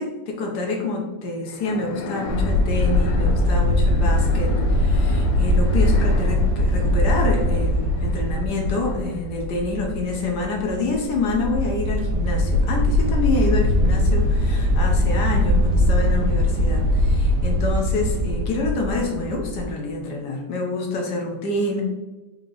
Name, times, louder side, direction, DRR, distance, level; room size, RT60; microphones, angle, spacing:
voice 1, 0.0-21.8, left 2 dB, 65° left, 1 dB, 1.1 m, -27 dB
sound 1, 1.4-9.5, left 4 dB, 80° left, 0.9 m, -36 dB
sound 2, 2.3-19.7, left 1 dB, 75° right, 0.9 m, -21 dB
4.7 x 2.8 x 3.9 m, 1.1 s
omnidirectional pair, 2.4 m